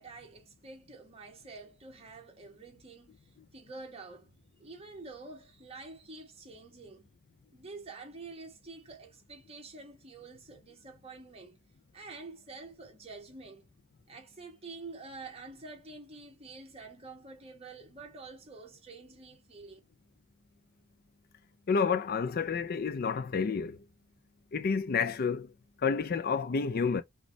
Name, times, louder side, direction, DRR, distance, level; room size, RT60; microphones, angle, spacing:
voice 1, 0.0-3.2 3.5-4.3 4.6-7.1 7.5-11.6 11.9-13.6 14.1-19.8, right 3 dB, 30° right, 1.2 m, -48 dB
voice 2, 21.7-23.8 24.5-25.5 25.8-27.0, left 5 dB, 45° left, 0.4 m, -29 dB
5.1 x 2.3 x 3.0 m
head